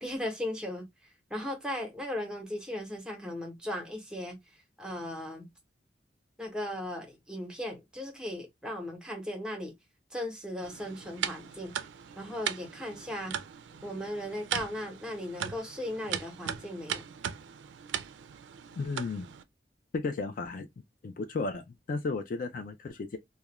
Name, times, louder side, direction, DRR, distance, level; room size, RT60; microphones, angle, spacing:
voice 1, 0.0-0.9 1.3-4.4 4.8-5.4 6.4-9.7 10.1-11.7 12.2-13.3 13.8-17.0, left 1 dB, 5° right, 0.8 m, -37 dB
sound 1, 10.6-19.4, right 9 dB, 90° right, 0.3 m, -39 dB
voice 2, 18.8-19.3 19.9-20.7 21.0-23.2, left 3 dB, 50° left, 0.3 m, -34 dB
2.4 x 2.1 x 2.8 m
head